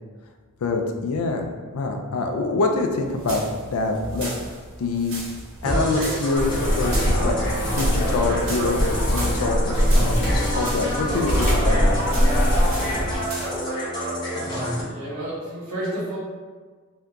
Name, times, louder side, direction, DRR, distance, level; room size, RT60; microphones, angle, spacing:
voice 1, 0.6-4.3 4.8-5.1 5.6-7.4 7.6-12.0, left 3 dB, 75° left, 3 dB, 0.4 m, -25 dB
sound 1, 3.0-13.6, right 2 dB, 60° right, 1.0 m, -37 dB
sound 2, 5.6-14.8, equal, 20° left, 0.8 m, -28 dB
sound 3, 6.4-13.2, equal, 50° left, 0.9 m, -22 dB
voice 2, 14.9-16.2, right 1 dB, 90° right, -7 dB, 1.2 m, -30 dB
2.7 x 2.3 x 3.6 m, 1.5 s
head